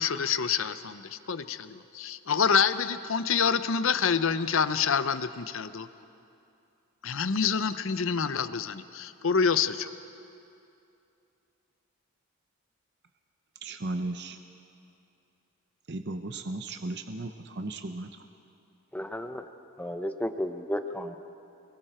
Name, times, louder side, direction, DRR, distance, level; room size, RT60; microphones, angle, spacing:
voice 1, 0.0-5.9 7.0-9.9, left 6 dB, 60° left, 12 dB, 0.7 m, -27 dB
voice 2, 13.6-14.3 15.9-17.3 17.6-18.1, right 2 dB, 50° right, 6 dB, 0.8 m, -35 dB
voice 3, 18.9-19.4 19.8-21.2, equal, 5° left, 7 dB, 0.8 m, -33 dB
29.0 x 22.0 x 4.4 m, 2.6 s
head